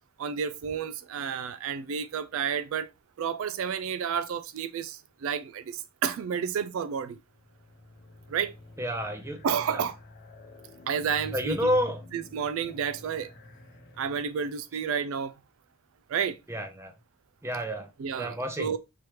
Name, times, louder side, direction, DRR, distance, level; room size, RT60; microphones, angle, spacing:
voice 1, 0.2-2.9 3.2-7.2 8.3-8.5 9.4-10.0 10.9-11.6 12.1-13.3 14.0-15.3 16.1-16.4 18.0-18.8, right 7 dB, 65° right, 0.3 m, -31 dB
sound 1, 7.2-14.7, left 2 dB, 50° left, 0.7 m, -48 dB
voice 2, 8.8-9.4 9.7-9.8 11.3-12.0 16.5-16.9 17.4-17.9 18.2-18.7, equal, 10° right, 0.6 m, -29 dB
4.9 x 3.0 x 2.9 m
head